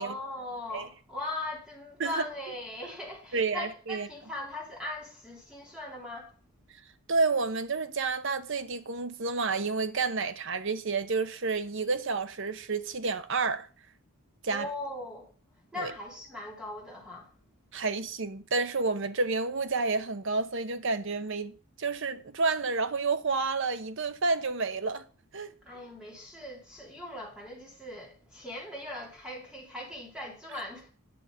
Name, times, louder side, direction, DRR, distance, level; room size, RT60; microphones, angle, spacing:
voice 1, 0.0-6.3 14.5-15.3 15.7-17.3 25.6-30.9, left 1 dB, 5° right, 3.1 m, -39 dB
voice 2, 3.3-4.1 7.1-13.7 14.4-14.7 15.8-15.9 17.7-21.5 21.8-25.0 25.3-25.5, right 4 dB, 60° right, 0.9 m, -30 dB
9.6 x 6.6 x 5.1 m
head